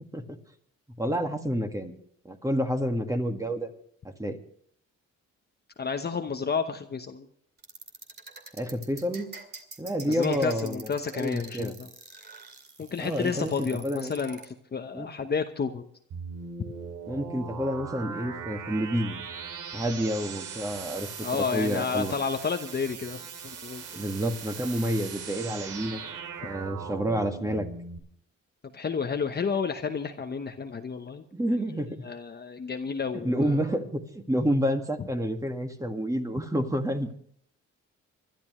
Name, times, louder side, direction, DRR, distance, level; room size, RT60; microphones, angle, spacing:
voice 1, 1.0-1.9 2.2-3.7 4.2-4.4 8.6-9.3 9.8-10.9 11.1-11.8 13.0-14.1 14.9-15.1 17.1-19.2 19.7-22.1 23.9-26.0 26.4-27.7 31.3-32.0 33.1-37.1, equal, 10° right, 5 dB, 1.8 m, -29 dB
voice 2, 5.8-7.3 10.0-11.9 12.8-15.9 21.2-23.9 28.6-31.2 32.0-33.6, left 5 dB, 35° left, 6 dB, 1.0 m, -31 dB
sound 1, 7.6-14.5, right 3 dB, 35° right, 2.4 m, -45 dB
sound 2, 16.1-28.0, right 6 dB, 85° right, 2.5 m, -40 dB
25.5 x 12.0 x 3.1 m, 0.62 s
cardioid pair, 90°, 30 cm